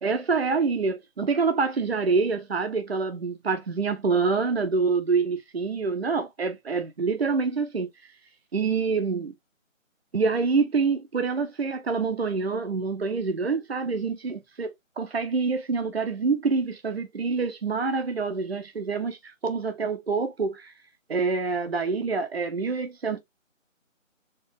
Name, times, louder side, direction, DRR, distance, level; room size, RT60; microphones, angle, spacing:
voice 1, 0.0-7.9 8.5-9.3 10.1-20.7 21.1-23.2, right 4 dB, 50° right, 0.8 m, -26 dB
4.4 x 2.4 x 3.3 m
figure-of-eight pair, 170°, 40 cm